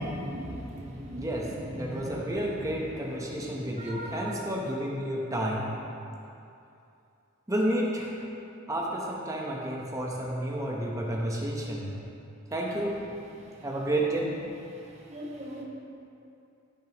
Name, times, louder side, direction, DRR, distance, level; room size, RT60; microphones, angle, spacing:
voice 1, 0.0-1.3 1.8-2.0 3.8-4.4 15.1-15.6, equal, 35° right, -3 dB, 1.2 m, -37 dB
voice 2, 1.2-5.7 7.5-8.2 8.7-11.9 12.5-13.0 13.6-14.3, right 1 dB, 15° right, -2 dB, 1.0 m, -31 dB
15.5 x 6.3 x 3.1 m, 2.7 s
head